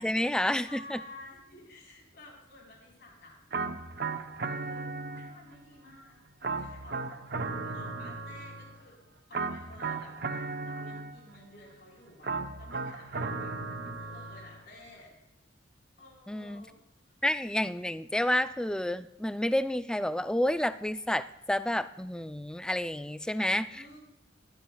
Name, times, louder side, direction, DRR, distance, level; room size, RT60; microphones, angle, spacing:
voice 1, 0.0-1.0 16.3-16.6 17.2-24.0, left 1 dB, 5° left, 12 dB, 0.3 m, -30 dB
voice 2, 0.6-3.4 4.1-7.3 7.6-9.0 9.3-15.1 16.0-16.8 17.1-17.2 23.7-24.0, left 2 dB, 60° left, -2 dB, 4.1 m, -52 dB
sound 1, 3.5-5.6 6.4-8.8 9.3-11.4 12.2-14.6, right 4 dB, 60° right, 0.8 m, -36 dB
21.5 x 12.0 x 2.3 m, 0.89 s
head